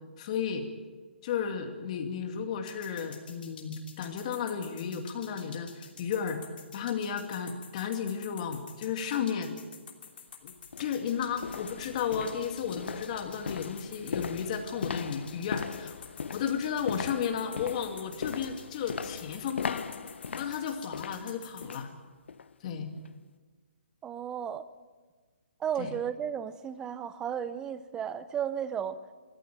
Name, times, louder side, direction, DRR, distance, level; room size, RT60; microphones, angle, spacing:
voice 1, 0.2-0.7 1.2-6.4 6.7-9.5 10.4-10.5 10.8-16.0 16.3-19.8 20.3-21.9 22.6-22.9 25.8-25.9, left 7 dB, 35° left, 5 dB, 2.4 m, -33 dB
sound 1, 2.7-21.8, left 7 dB, 55° left, 3.0 m, -49 dB
sound 2, 10.0-10.1 10.7-21.9 22.3-22.5 23.0-23.1, left 6 dB, 75° left, 0.9 m, -39 dB
voice 2, 24.0-24.6 25.6-29.0, right 8 dB, 10° right, 14 dB, 0.6 m, -34 dB
21.0 x 14.0 x 9.1 m, 1.4 s
hypercardioid pair, 160°, 6 cm